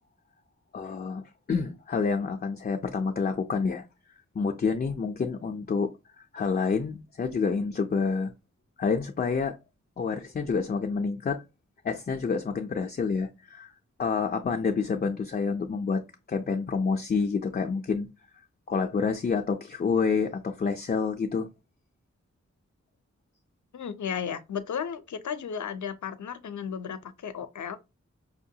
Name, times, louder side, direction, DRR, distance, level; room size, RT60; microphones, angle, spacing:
voice 1, 0.7-3.9 4.3-5.9 6.2-8.3 8.8-9.6 10.0-11.4 11.8-13.7 14.0-16.0 16.3-18.1 18.7-21.5, left 5 dB, 35° left, 0.4 m, -28 dB
voice 2, 23.7-27.8, left 7 dB, 85° left, 0.5 m, -34 dB
5.5 x 2.2 x 2.7 m
wide cardioid pair, 95°, 29 cm